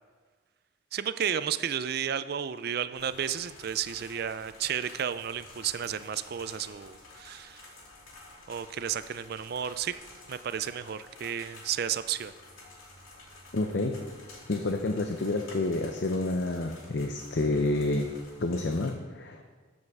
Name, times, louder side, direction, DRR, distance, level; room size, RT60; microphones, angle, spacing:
voice 1, 0.9-7.7 8.5-9.9 10.3-12.3, right 8 dB, 50° right, 13 dB, 0.4 m, -32 dB
sound 1, 2.9-18.9, left 2 dB, 85° left, 2.6 m, -51 dB
voice 2, 13.5-14.0 14.5-18.1 18.4-19.5, left 2 dB, 55° left, 5 dB, 0.6 m, -29 dB
13.5 x 5.3 x 4.8 m, 1.5 s
head